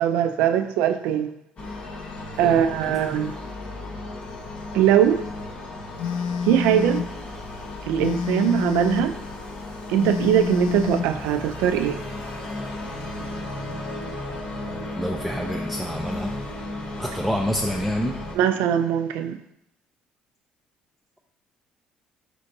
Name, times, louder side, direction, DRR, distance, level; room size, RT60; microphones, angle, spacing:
voice 1, 0.0-1.3 2.4-3.3 4.7-5.2 6.4-7.0 7.9-9.1 9.9-12.0 18.4-19.4, right 10 dB, 85° right, 9 dB, 0.3 m, -21 dB
sound 1, 1.6-18.4, left 2 dB, 45° left, 0.8 m, -35 dB
Telephone, 6.0-7.1 8.0-9.1 10.0-11.1, left 6 dB, 85° left, 0.3 m, -27 dB
voice 2, 15.0-16.4 17.0-18.1, equal, ahead, 0 dB, 0.3 m, -28 dB
4.4 x 4.0 x 2.7 m, 0.78 s
cardioid pair, 130°, 3 cm